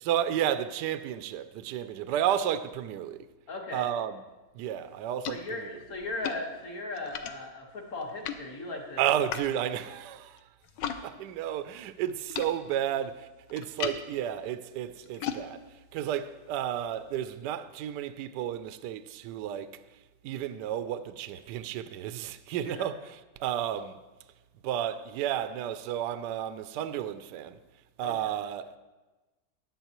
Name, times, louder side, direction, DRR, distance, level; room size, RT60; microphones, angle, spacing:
voice 1, 0.0-3.3 3.7-4.2 4.5-5.7 9.0-10.4 11.0-19.7 20.2-24.0 24.6-27.6 28.0-28.8, right 10 dB, 75° right, 1.0 m, -32 dB
voice 2, 3.5-3.8 5.3-9.0 9.7-9.9 10.9-11.1 22.6-22.9 28.0-28.3, left 2 dB, 40° left, 1.6 m, -38 dB
sound 1, 4.6-11.0 11.3-17.2, left 8 dB, 70° left, 1.2 m, -41 dB
14.5 x 10.0 x 3.0 m
omnidirectional pair, 2.3 m